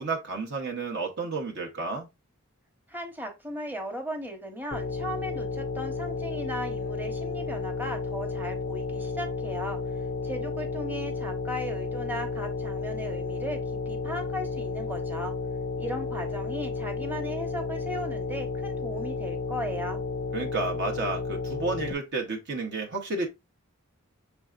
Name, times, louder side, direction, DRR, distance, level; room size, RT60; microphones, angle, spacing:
voice 1, 0.0-2.1 20.3-23.3, right 3 dB, 55° right, 0.9 m, -31 dB
voice 2, 2.9-15.3 15.8-20.0, equal, 10° right, 0.9 m, -37 dB
sound 1, 4.7-21.9, left 4 dB, 40° left, 0.4 m, -32 dB
6.1 x 3.4 x 2.4 m
head